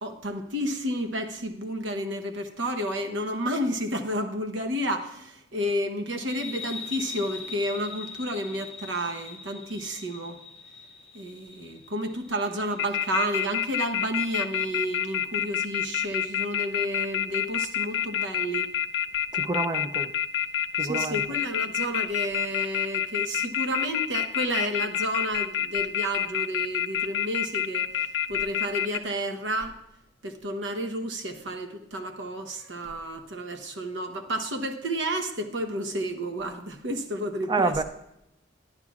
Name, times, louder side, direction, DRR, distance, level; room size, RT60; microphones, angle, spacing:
voice 1, 0.0-10.4 11.1-18.7 20.8-27.9 28.3-29.7 30.2-37.8, equal, 70° right, 6 dB, 0.9 m, -31 dB
sound 1, 6.3-13.5, left 5 dB, 30° left, 0.8 m, -42 dB
sound 2, 12.8-29.0, left 10 dB, 60° left, 0.4 m, -27 dB
voice 2, 19.3-20.1 20.8-21.2 37.5-37.8, right 3 dB, 25° right, 9 dB, 0.5 m, -27 dB
12.0 x 10.5 x 2.4 m, 0.84 s
head